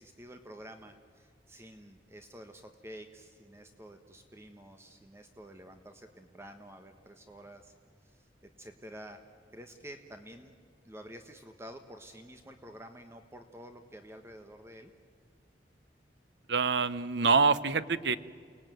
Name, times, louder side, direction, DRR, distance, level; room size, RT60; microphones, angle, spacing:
voice 1, 0.0-7.7 8.0-8.3 8.6-9.2 9.5-10.6 10.8-14.9, equal, 15° right, 6 dB, 1.1 m, -49 dB
voice 2, 16.5-18.2, right 4 dB, 75° right, 15 dB, 0.8 m, -26 dB
29.5 x 19.0 x 9.2 m, 2.2 s
head